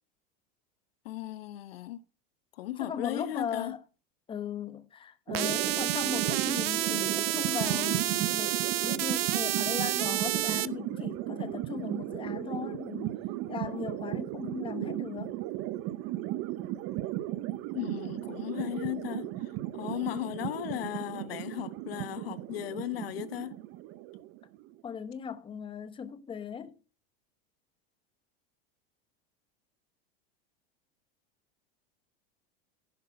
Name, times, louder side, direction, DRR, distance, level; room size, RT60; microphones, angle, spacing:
voice 1, 1.0-2.0 2.6-3.8 17.7-19.3 19.7-23.6, left 14 dB, 85° left, 1.0 m, -36 dB
voice 2, 2.8-3.8 4.3-8.5 8.8-13.2 13.5-15.4 24.8-26.8, left 7 dB, 15° left, 0.9 m, -38 dB
sound 1, 5.3-24.8, right 15 dB, 50° right, 0.8 m, -36 dB
sound 2, 5.3-10.7, right 16 dB, 90° right, 0.6 m, -30 dB
11.0 x 5.3 x 6.9 m
supercardioid pair, 125°, 29 cm